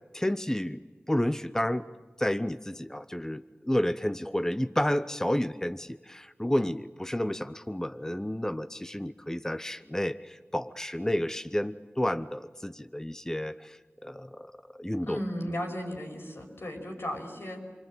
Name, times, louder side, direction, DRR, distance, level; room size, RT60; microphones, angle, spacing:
voice 1, 0.1-0.8 1.1-1.8 2.2-14.5 14.8-15.2, left 1 dB, 15° left, 11 dB, 0.8 m, -31 dB
voice 2, 15.0-17.6, equal, 75° left, 2 dB, 6.0 m, -35 dB
27.0 x 25.0 x 9.0 m, 1.4 s
wide cardioid pair, 55°, 4 cm